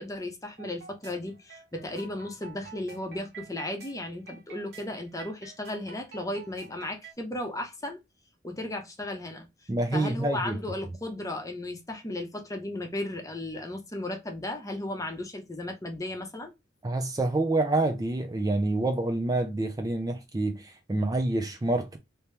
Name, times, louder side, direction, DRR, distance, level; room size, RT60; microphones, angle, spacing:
voice 1, 0.0-8.0 8.4-9.5 9.9-16.5, left 1 dB, 20° left, 0.8 m, -35 dB
sound 1, 0.6-7.1, right 5 dB, 60° right, 1.1 m, -49 dB
voice 2, 9.7-10.6 16.8-22.0, right 2 dB, 20° right, 0.4 m, -27 dB
3.0 x 2.8 x 3.3 m
head